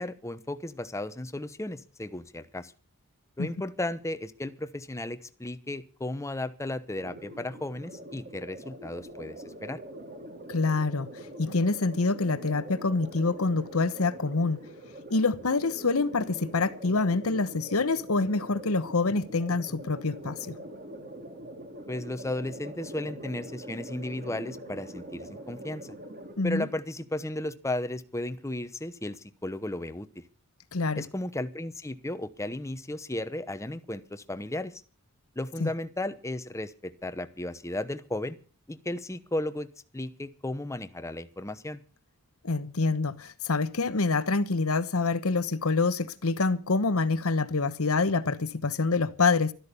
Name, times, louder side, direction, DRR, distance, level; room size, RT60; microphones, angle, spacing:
voice 1, 0.0-2.7 3.4-9.8 21.9-26.0 26.4-30.2 31.0-34.8 35.4-38.4 38.7-39.7 39.9-41.8, left 1 dB, 15° left, 0.9 m, -35 dB
sound 1, 6.9-26.4, right 1 dB, 45° right, 3.0 m, -44 dB
voice 2, 10.5-14.6 15.1-20.6 26.4-26.7 30.7-31.0 35.6-35.7 42.4-49.5, left 3 dB, 80° left, 1.1 m, -26 dB
12.5 x 12.5 x 6.9 m
head